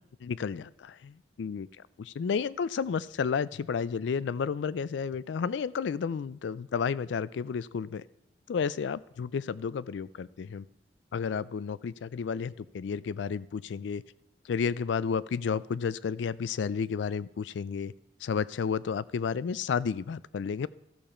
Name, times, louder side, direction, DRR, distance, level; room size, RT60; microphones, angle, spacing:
voice 1, 0.2-1.7 2.0-8.0 8.5-10.6 11.1-14.0 14.5-17.9 18.2-20.7, left 6 dB, 80° left, 19 dB, 0.3 m, -32 dB
13.0 x 6.8 x 4.3 m, 0.86 s
head